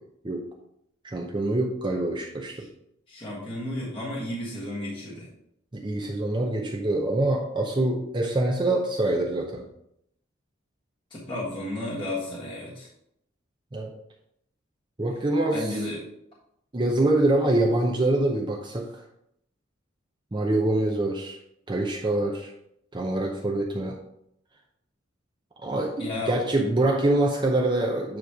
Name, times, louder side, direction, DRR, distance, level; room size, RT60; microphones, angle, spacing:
voice 1, 1.0-2.6 5.7-9.6 13.7-13.9 15.0-15.7 16.7-19.0 20.3-21.4 21.7-22.5 22.9-24.0 25.6-28.2, right 2 dB, 25° right, 0 dB, 0.7 m, -25 dB
voice 2, 3.1-5.3 11.1-12.9 15.5-16.0 26.0-26.3, left 1 dB, 25° left, -7 dB, 1.5 m, -33 dB
9.3 x 3.1 x 4.9 m, 0.74 s
head